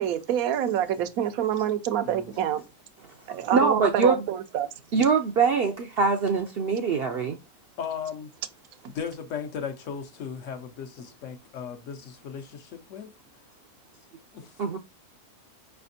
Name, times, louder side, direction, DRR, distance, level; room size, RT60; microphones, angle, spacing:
voice 1, 0.0-2.6 3.3-4.7 8.8-8.9, right 10 dB, 85° right, 1.0 m, -27 dB
voice 2, 2.0-2.4 7.8-8.3 8.9-13.1 14.3-14.5, left 7 dB, 65° left, 1.0 m, -36 dB
voice 3, 3.3-4.2 4.9-7.4 14.6-14.8, right 5 dB, 65° right, 0.6 m, -23 dB
4.9 x 3.4 x 2.6 m
omnidirectional pair, 1.5 m